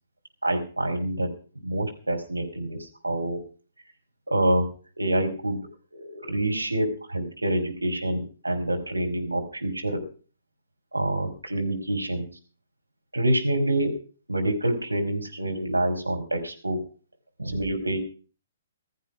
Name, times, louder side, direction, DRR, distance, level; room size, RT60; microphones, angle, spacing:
voice 1, 0.4-1.3 1.6-3.4 4.3-4.7 5.0-5.6 5.9-10.0 10.9-12.3 13.1-13.9 14.3-16.8 17.4-18.0, right 1 dB, 80° right, 3 dB, 5.3 m, -26 dB
17.0 x 14.0 x 4.8 m, 0.39 s
figure-of-eight pair, 125°, 0 cm